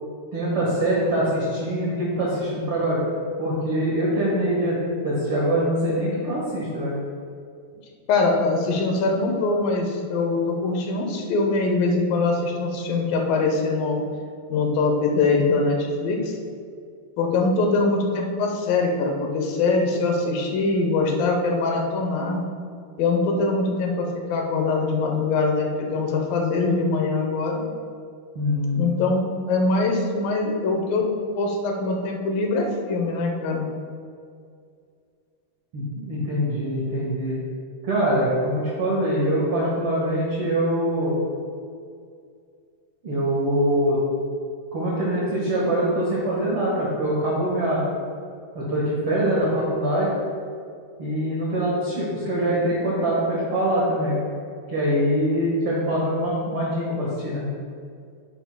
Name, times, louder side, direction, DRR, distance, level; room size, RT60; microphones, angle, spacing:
voice 1, 0.3-3.0 3.4-4.8 5.0-6.9 28.3-28.8 35.7-37.4 37.8-41.1 43.0-44.0 44.7-47.8 48.5-50.1 51.0-54.2 54.7-57.5, right 1 dB, 55° right, -6 dB, 1.6 m, -23 dB
voice 2, 8.1-14.0 14.5-16.4 17.2-22.4 23.0-27.6 28.7-31.1 31.4-33.7, left 3 dB, 75° left, 2 dB, 2.4 m, -23 dB
10.5 x 9.0 x 2.2 m, 2.3 s
omnidirectional pair, 4.6 m